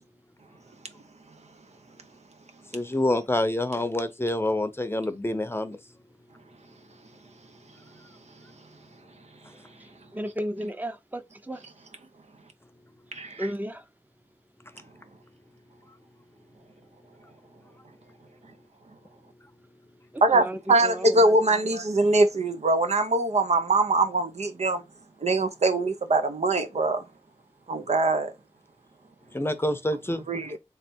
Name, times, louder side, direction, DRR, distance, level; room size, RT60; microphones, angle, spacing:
voice 1, 2.7-5.8 29.3-30.2, left 1 dB, 20° left, 0.7 m, -27 dB
voice 2, 10.1-11.2 11.5-11.6 13.4-13.8 20.3-21.4, equal, 15° right, 0.7 m, -33 dB
voice 3, 13.1-13.5 20.2-24.8 25.2-27.0 27.7-28.3 30.3-30.6, right 2 dB, 70° right, 0.7 m, -23 dB
3.3 x 3.3 x 4.4 m
wide cardioid pair, 60°, 12 cm